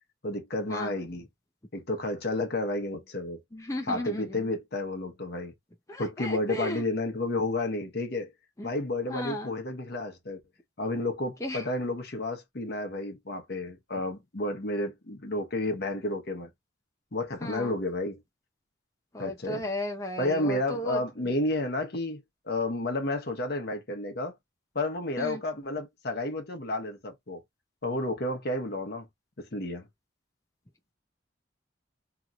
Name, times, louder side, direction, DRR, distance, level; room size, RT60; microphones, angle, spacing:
voice 1, 0.2-1.3 1.7-3.4 3.9-5.5 6.0-8.3 8.6-10.4 10.8-16.5 17.1-18.2 19.2-19.6 20.2-24.3 24.7-27.4 27.8-29.1 29.4-29.9, left 2 dB, 55° left, 0.9 m, -31 dB
voice 2, 3.5-4.4 5.9-6.8 7.3-7.4 8.6-8.7 9.1-9.5 11.4-11.6 17.4-17.7 19.1-21.0 25.2-25.4, left 1 dB, 15° left, 0.6 m, -35 dB
2.9 x 2.7 x 2.4 m
head